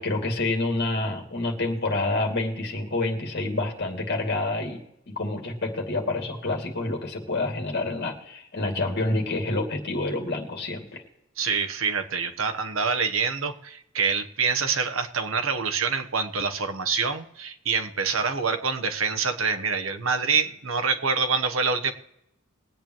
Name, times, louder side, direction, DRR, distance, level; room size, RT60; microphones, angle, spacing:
voice 1, 0.0-4.8 5.1-11.0, left 2 dB, 55° left, 2 dB, 2.5 m, -28 dB
voice 2, 11.4-21.9, right 5 dB, 75° right, 7 dB, 1.1 m, -26 dB
22.0 x 8.8 x 3.1 m, 0.81 s
head